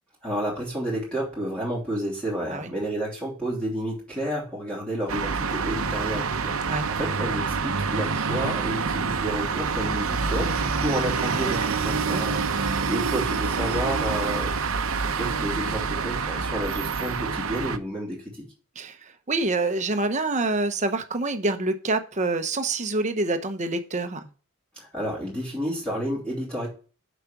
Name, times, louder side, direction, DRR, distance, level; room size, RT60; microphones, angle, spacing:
voice 1, 0.2-14.5 15.0-18.4 24.8-26.7, right 1 dB, 5° left, 2.9 m, -31 dB
sound 1, 5.1-17.8, right 5 dB, 75° right, 0.8 m, -27 dB
voice 2, 12.1-12.4 18.8-24.3, right 2 dB, 35° right, 0.9 m, -27 dB
7.2 x 5.1 x 5.9 m
head